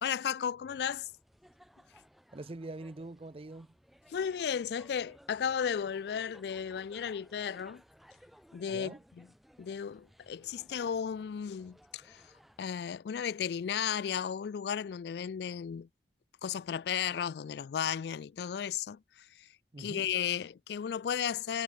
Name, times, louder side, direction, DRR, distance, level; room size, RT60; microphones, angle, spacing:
voice 1, 0.0-1.1 4.1-7.8 8.5-9.3 9.6-12.3 12.6-15.9 16.4-19.5 19.8-21.6, left 8 dB, 65° left, 0.3 m, -34 dB
sound 1, 0.8-12.7, equal, ahead, 2.0 m, -60 dB
voice 2, 2.3-3.7 8.7-9.0 19.7-20.1, right 2 dB, 35° right, 0.6 m, -44 dB
head